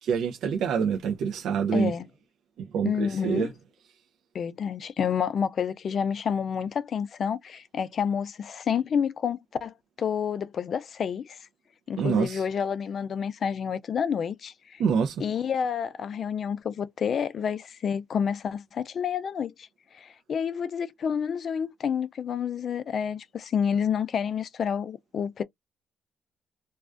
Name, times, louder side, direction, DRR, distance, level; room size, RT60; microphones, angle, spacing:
voice 1, 0.0-1.9 2.6-3.5 12.0-12.4 14.8-15.2, right 6 dB, 80° right, 0.4 m, -26 dB
voice 2, 1.7-2.1 2.8-3.5 4.3-11.4 11.9-14.8 15.2-19.7 19.9-25.4, left 7 dB, 55° left, 0.4 m, -29 dB
2.3 x 2.2 x 2.4 m
cardioid pair, 90°, 0 cm